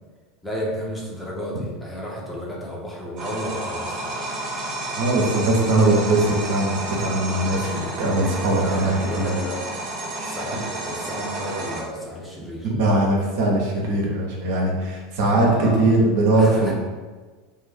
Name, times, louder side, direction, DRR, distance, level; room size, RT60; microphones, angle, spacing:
voice 1, 0.4-4.1 8.4-9.6 10.2-12.7 15.3-15.9 16.3-16.7, equal, 5° left, -4 dB, 0.7 m, -32 dB
sound 1, 3.2-11.8, right 2 dB, 40° right, 0.9 m, -31 dB
voice 2, 4.9-9.3 12.6-16.7, right 2 dB, 60° right, -2 dB, 0.6 m, -20 dB
2.6 x 2.3 x 3.3 m, 1.3 s
hypercardioid pair, 80°, 0 cm